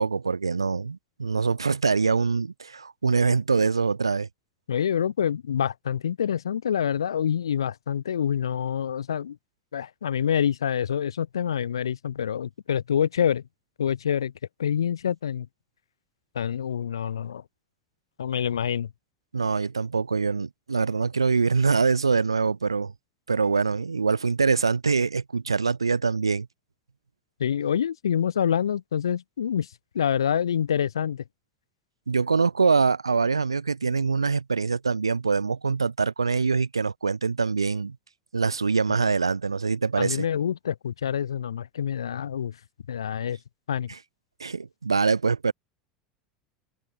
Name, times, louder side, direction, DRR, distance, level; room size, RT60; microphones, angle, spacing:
voice 1, 0.0-4.3 19.3-22.9 23.3-26.5 32.1-38.0 38.3-40.2 44.4-45.5, right 4 dB, 90° right, 0.6 m, -24 dB
voice 2, 4.7-9.4 9.7-13.4 13.8-14.3 14.6-15.5 16.3-17.4 18.2-18.9 27.4-31.2 39.0-39.1 40.0-42.6 42.9-43.4 43.7-43.9, left 8 dB, 80° left, 2.3 m, -26 dB
figure-of-eight pair, 80°, 3 cm